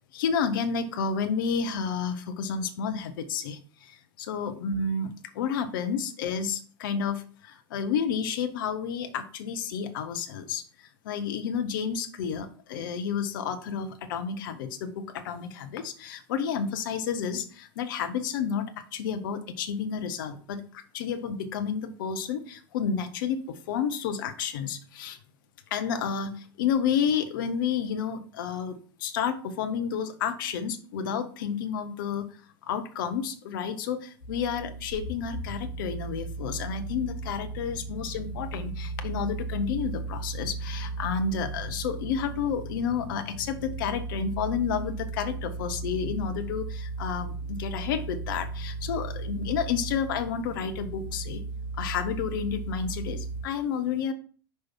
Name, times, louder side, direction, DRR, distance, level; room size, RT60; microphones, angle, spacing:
voice 1, 0.1-25.2 25.7-32.3 32.6-51.4 51.8-54.1, left 7 dB, 55° left, 8 dB, 0.9 m, -31 dB
sound 1, 34.2-53.4, right 3 dB, 85° left, 1.6 m, -36 dB
5.6 x 4.7 x 4.5 m, 0.43 s
figure-of-eight pair, 85°, 13 cm